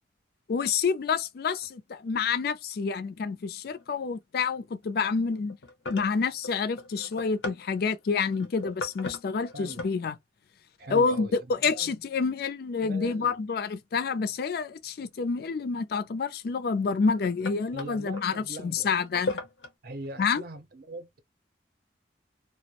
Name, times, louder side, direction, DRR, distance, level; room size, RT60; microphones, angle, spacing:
voice 1, 0.5-5.6 5.9-10.2 10.9-19.4 20.2-20.4, left 5 dB, 55° left, 0.4 m, -28 dB
sound 1, 1.6-1.7 3.8-4.2 4.5-4.8 5.3-10.0 11.1-11.6 13.6-13.7 15.9-16.0 16.8-18.3 19.0-19.7, left 2 dB, 90° left, 0.8 m, -39 dB
voice 2, 9.5-9.8 10.8-11.4 11.6-11.9 12.8-13.4 17.7-18.9 19.8-21.2, right 2 dB, 55° right, 0.6 m, -41 dB
2.4 x 2.0 x 2.8 m
head